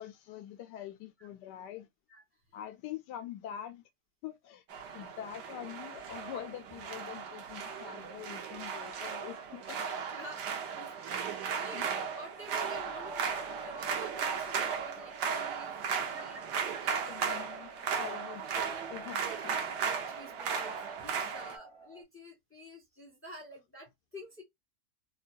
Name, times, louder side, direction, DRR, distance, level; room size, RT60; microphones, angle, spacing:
voice 1, 0.0-1.9 2.5-3.8 4.2-4.6 4.9-9.8 11.2-11.4 11.7-11.9 17.1-17.7 18.0-19.6, left 11 dB, 85° left, 1.3 m, -44 dB
sound 1, 4.7-21.6, right 6 dB, 80° right, 1.3 m, -36 dB
voice 2, 9.8-15.7 16.0-18.2 19.3-19.5 20.0-24.4, equal, 10° left, 1.1 m, -50 dB
sound 2, 12.7-22.0, right 2 dB, 50° right, 1.1 m, -50 dB
3.5 x 2.2 x 2.6 m
omnidirectional pair, 1.8 m